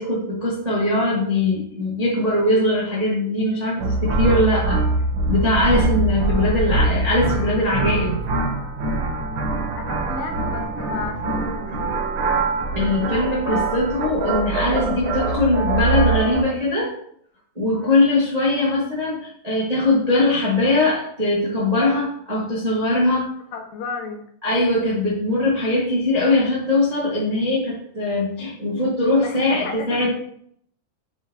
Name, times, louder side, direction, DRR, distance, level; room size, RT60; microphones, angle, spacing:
voice 1, 0.0-4.9 5.2-8.2 12.7-16.9 17.5-23.3 24.4-30.1, left 2 dB, 25° right, -6 dB, 0.8 m, -21 dB
sound 1, 3.8-16.4, right 2 dB, 85° right, 1.0 m, -23 dB
voice 2, 9.3-11.9 17.7-18.1 23.5-24.3 29.2-30.1, left 4 dB, 80° left, 2 dB, 2.5 m, -34 dB
7.9 x 4.5 x 2.9 m, 0.65 s
omnidirectional pair, 3.9 m